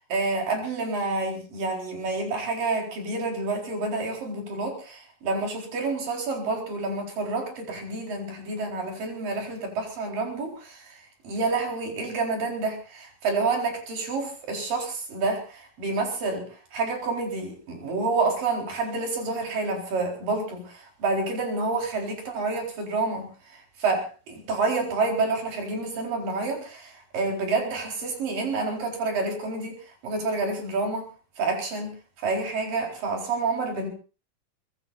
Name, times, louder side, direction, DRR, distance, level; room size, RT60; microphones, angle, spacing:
voice 1, 0.0-31.1 31.4-33.9, right 3 dB, 90° right, 1 dB, 5.8 m, -29 dB
23.5 x 21.0 x 2.6 m, 0.34 s
omnidirectional pair, 3.8 m